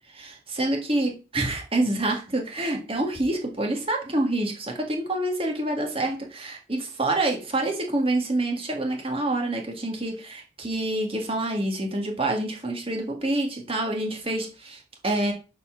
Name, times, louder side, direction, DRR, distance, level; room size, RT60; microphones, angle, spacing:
voice 1, 0.1-15.3, right 2 dB, 30° right, 3 dB, 1.7 m, -27 dB
7.3 x 4.2 x 5.6 m, 0.32 s
head